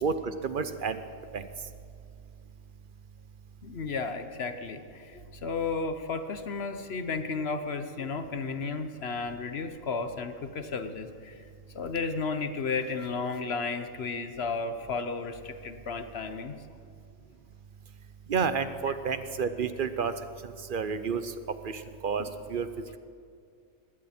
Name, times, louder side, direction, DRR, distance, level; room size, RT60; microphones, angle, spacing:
voice 1, 0.0-1.0 1.3-1.4 18.3-20.1 20.4-21.3 21.6-22.7, right 5 dB, 50° right, 11 dB, 0.7 m, -30 dB
voice 2, 3.6-11.4 11.7-16.6 18.9-19.0 22.2-22.3, left 4 dB, 55° left, 9 dB, 1.0 m, -33 dB
20.5 x 16.5 x 4.3 m, 2.3 s
omnidirectional pair, 1.5 m